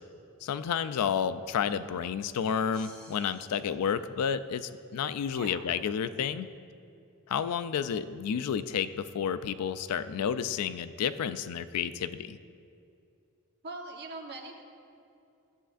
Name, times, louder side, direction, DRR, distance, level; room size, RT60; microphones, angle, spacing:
voice 1, 0.4-6.5 7.3-12.4, left 7 dB, 90° left, 13 dB, 0.4 m, -31 dB
sound 1, 2.7-4.7, equal, 5° left, 2.2 m, -55 dB
voice 2, 5.3-5.6 13.6-14.6, right 2 dB, 50° right, 2 dB, 1.0 m, -42 dB
14.0 x 7.9 x 2.5 m, 2.6 s
head